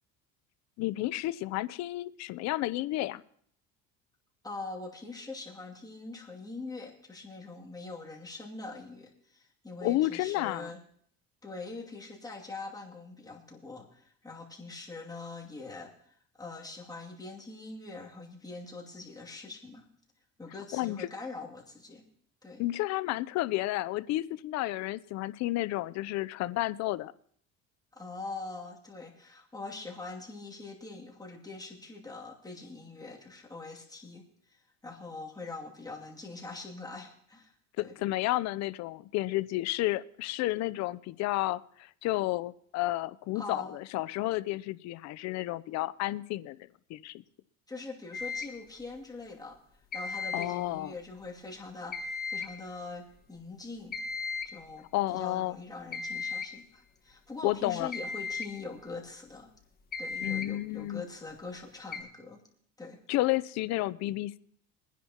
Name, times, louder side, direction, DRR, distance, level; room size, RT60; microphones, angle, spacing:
voice 1, 0.8-3.2 9.8-10.7 20.7-21.1 22.6-27.1 37.8-46.6 46.9-47.2 50.3-50.9 54.9-55.6 57.4-57.9 60.2-61.0 63.1-64.4, left 17 dB, 60° left, 16 dB, 0.6 m, -31 dB
voice 2, 4.4-10.8 11.4-19.8 20.4-22.0 22.4-22.6 27.9-34.6 34.8-37.5 37.8-37.9 43.3-43.8 47.7-49.5 49.9-54.0 54.4-59.5 60.0-62.4 62.8-63.0, left 3 dB, 10° left, -1 dB, 2.4 m, -43 dB
sound 1, 48.1-48.6 49.9-50.6 51.9-52.6 53.9-54.6 55.9-56.6 57.9-58.6 59.9-60.6 61.9-62.0, left 5 dB, 30° left, 1.4 m, -36 dB
22.0 x 10.0 x 2.9 m, 0.62 s
cardioid pair, 110°, 30 cm